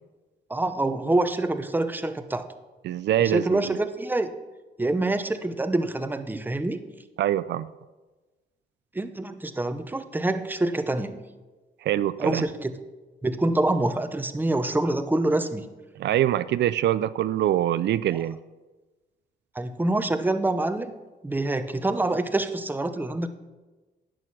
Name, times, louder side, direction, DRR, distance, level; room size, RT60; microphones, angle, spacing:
voice 1, 0.5-2.5 3.2-4.3 4.8-6.8 8.9-11.2 12.2-12.7 13.2-15.7 19.5-20.9 21.2-23.3, right 2 dB, 10° right, 9 dB, 0.7 m, -26 dB
voice 2, 2.8-3.6 7.2-7.7 11.8-12.4 16.0-18.4, right 12 dB, 70° right, 15 dB, 0.4 m, -24 dB
11.0 x 8.9 x 6.0 m, 1.2 s
cardioid pair, 115°, 18 cm